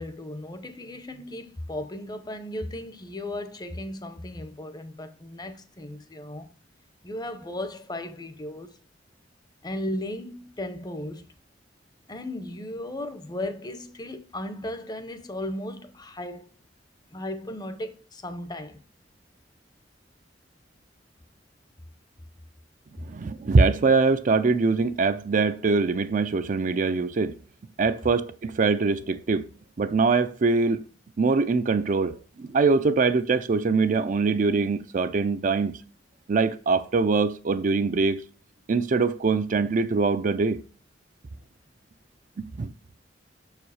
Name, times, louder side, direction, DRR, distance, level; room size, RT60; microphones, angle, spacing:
voice 1, 0.0-6.5 7.0-8.8 9.6-11.3 12.1-16.5 17.1-18.8, left 1 dB, 25° left, 0.7 m, -36 dB
voice 2, 23.0-27.4 27.8-29.4 29.8-30.8 31.2-35.7 36.3-38.2 38.7-40.6 42.4-42.7, right 4 dB, 45° right, 0.4 m, -23 dB
6.3 x 4.9 x 4.8 m
head